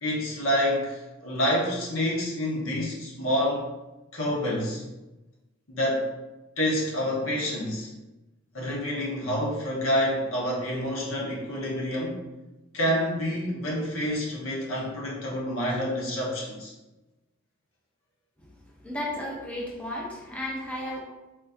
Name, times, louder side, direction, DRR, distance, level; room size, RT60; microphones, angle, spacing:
voice 1, 0.0-3.6 4.1-4.8 5.7-6.1 6.6-7.9 8.5-12.2 12.7-16.7, equal, 75° left, -3 dB, 1.2 m, -28 dB
voice 2, 18.8-21.0, left 1 dB, 5° left, -4 dB, 0.7 m, -33 dB
4.2 x 2.6 x 4.1 m, 1.0 s
head